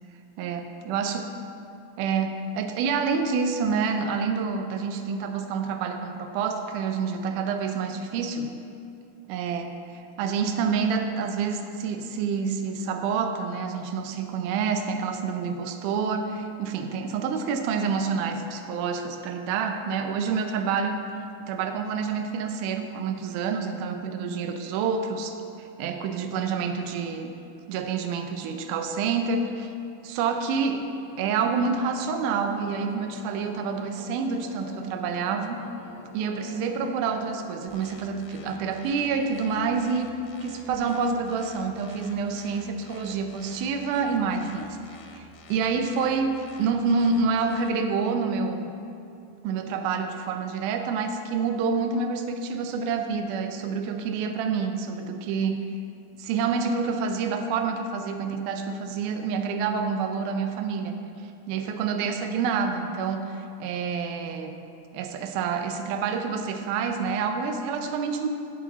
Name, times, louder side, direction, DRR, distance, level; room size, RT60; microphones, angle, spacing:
voice 1, 0.4-1.3 2.0-8.5 9.3-21.0 21.5-27.3 27.7-29.7 30.0-30.9 31.2-35.6 36.1-40.1 40.4-44.8 45.1-48.7 49.4-55.6 56.2-60.9 61.5-64.5 64.9-68.3, right 5 dB, 80° right, 6 dB, 2.0 m, -28 dB
sound 1, 30.5-38.3, left 3 dB, 70° left, 1.5 m, -47 dB
sound 2, 37.7-47.7, left 3 dB, 90° left, 2.3 m, -50 dB
14.0 x 4.9 x 4.1 m, 2.6 s
omnidirectional pair, 3.9 m